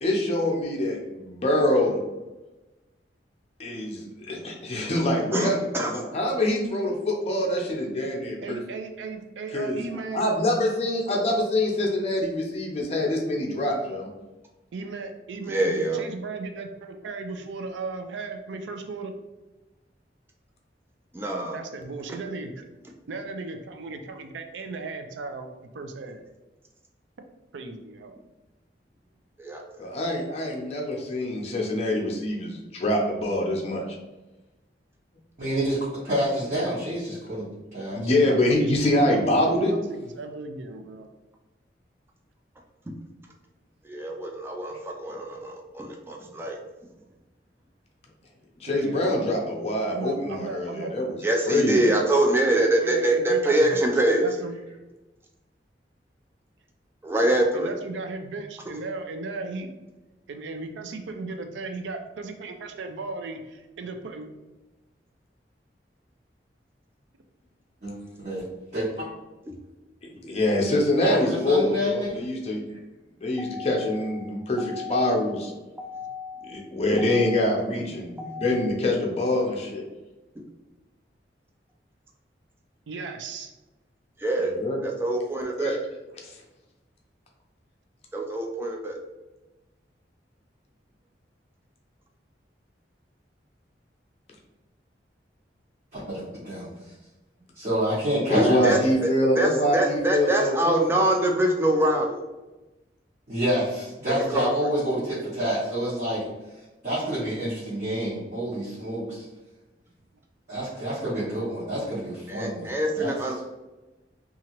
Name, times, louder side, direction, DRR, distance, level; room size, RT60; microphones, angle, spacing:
voice 1, 0.0-2.0 3.6-8.6 9.5-9.8 10.1-14.1 29.8-33.8 37.9-39.7 48.6-51.2 51.5-51.8 70.2-72.6 73.2-75.5 76.5-79.8 84.4-84.8 85.6-85.8 86.2-86.4 98.3-100.8, left 1 dB, 35° left, 0 dB, 0.5 m, -25 dB
voice 2, 8.4-10.3 14.7-19.1 21.5-22.7 23.1-26.2 27.5-28.1 38.2-41.1 48.7-49.2 49.9-50.9 52.5-54.6 57.5-59.7 60.3-64.3 75.4-75.5 82.9-83.5, right 3 dB, 85° right, 6 dB, 0.4 m, -36 dB
voice 3, 15.5-16.0 21.1-21.6 29.4-29.6 43.8-46.6 51.2-54.2 57.0-57.7 73.4-75.4 75.8-76.6 76.9-77.4 78.2-78.6 84.2-84.5 84.8-85.8 88.1-89.0 98.3-98.8 99.4-102.2 104.1-104.5 112.3-113.4, right 1 dB, 15° right, 1 dB, 0.3 m, -25 dB
voice 4, 35.4-37.5 37.7-38.1 67.8-68.0 68.2-68.4 68.7-69.1 71.0-72.2 95.9-96.7 97.5-98.8 103.3-106.2 106.8-109.3 110.5-113.1, equal, 45° right, -10 dB, 0.9 m, -28 dB
2.9 x 2.4 x 2.8 m, 1.1 s
head